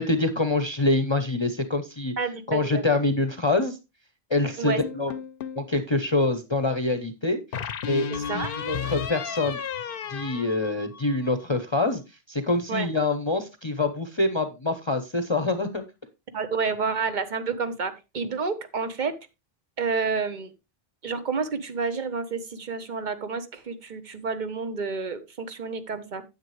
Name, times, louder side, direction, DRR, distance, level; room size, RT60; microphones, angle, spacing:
voice 1, 0.0-2.1 2.5-3.8 4.3-5.1 5.6-7.4 7.8-9.6 10.1-12.0 12.3-15.8, left 2 dB, 30° left, 9 dB, 0.8 m, -25 dB
voice 2, 2.2-2.8 4.6-4.8 8.1-8.5 12.7-12.9 16.3-19.2 19.8-20.5 21.0-26.2, right 5 dB, 50° right, 11 dB, 1.1 m, -29 dB
sound 1, 4.8-5.7 7.5-11.3, left 7 dB, 65° left, 0.9 m, -33 dB
9.4 x 8.4 x 3.2 m, 0.25 s
omnidirectional pair, 1.0 m